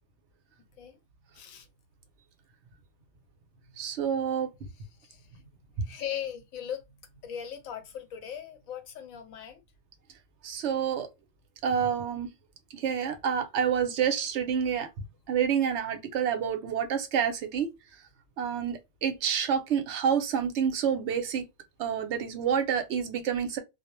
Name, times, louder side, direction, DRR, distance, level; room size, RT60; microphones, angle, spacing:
voice 1, 1.3-1.7 5.0-5.4 5.8-6.9 7.2-9.6, left 9 dB, 90° left, 1.1 m, -39 dB
voice 2, 3.8-4.5 10.4-11.1 11.6-12.3 12.7-14.9 15.3-17.7 18.4-21.5 21.8-23.6, right 8 dB, 65° right, 0.8 m, -28 dB
2.2 x 2.0 x 2.9 m
omnidirectional pair, 1.4 m